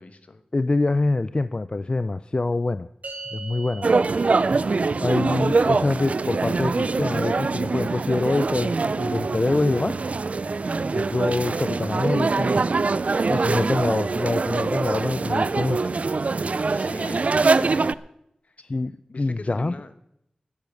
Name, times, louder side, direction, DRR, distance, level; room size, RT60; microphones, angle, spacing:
voice 1, 0.0-0.4 10.6-10.9 16.7-18.0 18.4-18.6 19.1-19.9, left 3 dB, 60° left, 11 dB, 1.1 m, -42 dB
voice 2, 0.5-2.9 3.3-3.9 5.0-10.0 10.9-12.6 13.3-15.9 18.6-19.7, left 2 dB, 40° left, 14 dB, 0.4 m, -25 dB
sound 1, 3.0-9.6, right 3 dB, 75° right, 3.4 m, -45 dB
sound 2, 3.8-17.9, right 3 dB, 60° right, 0.4 m, -23 dB
12.0 x 10.5 x 6.4 m, 0.79 s
wide cardioid pair, 70°, 3 cm